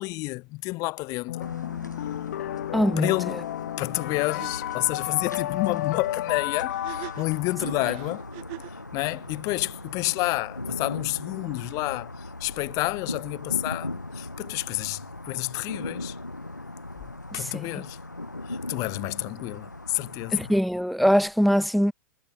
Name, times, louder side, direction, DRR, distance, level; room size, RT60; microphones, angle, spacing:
voice 1, 0.0-1.5 2.0-2.1 3.0-3.5 3.8-8.2 8.7-16.2 17.0-18.0 18.4-20.5, left 23 dB, 40° left, 1.8 m, -30 dB
sound 1, 1.3-8.3, left 13 dB, 55° left, 1.3 m, -33 dB
sound 2, 1.4-20.6, left 2 dB, 90° left, 1.2 m, -39 dB
voice 2, 2.7-3.1 17.3-17.4 17.7-17.8 20.3-21.9, equal, ahead, 0.4 m, -22 dB
sound 3, 4.0-4.1 4.4-4.5 6.7-8.8, right 40 dB or more, 45° right, 3.0 m, -41 dB
figure-of-eight pair, 95°, 9 cm